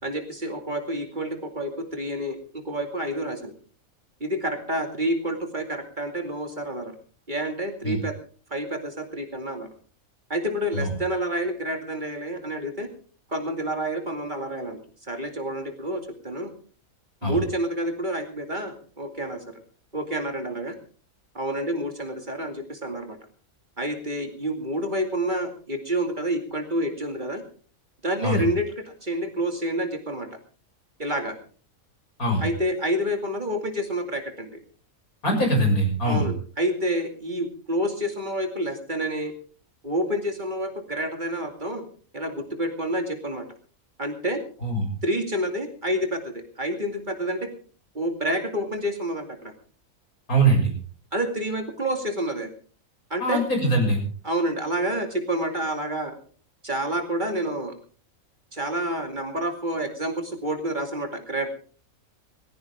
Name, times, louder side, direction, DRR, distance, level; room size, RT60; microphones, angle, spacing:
voice 1, 0.0-3.5 4.2-6.9 7.3-8.1 8.5-9.7 10.3-12.9 13.3-16.5 17.2-19.6 19.9-20.8 21.3-23.2 23.8-27.4 28.0-30.3 31.0-31.4 32.4-34.6 36.0-39.3 39.8-41.8 42.1-43.4 44.0-44.4 45.0-47.5 47.9-49.5 51.1-52.5 53.1-53.4 54.2-56.1 56.6-57.7 58.5-61.5, right 1 dB, 35° right, 4 dB, 2.6 m, -28 dB
voice 2, 35.2-36.2 44.6-44.8 50.3-50.7 53.2-54.0, right 1 dB, 90° left, 2 dB, 6.9 m, -22 dB
20.0 x 16.0 x 3.6 m, 0.41 s
omnidirectional pair, 1.5 m